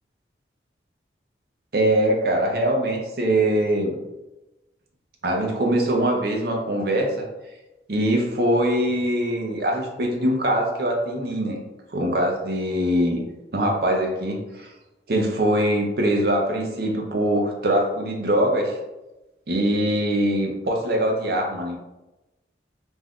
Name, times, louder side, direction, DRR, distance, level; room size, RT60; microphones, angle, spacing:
voice 1, 1.7-4.0 5.2-7.2 7.9-11.6 11.9-13.2 13.5-14.7 15.1-18.8 19.5-21.8, right 1 dB, 55° right, 1 dB, 0.6 m, -22 dB
2.6 x 2.3 x 3.5 m, 1.0 s
head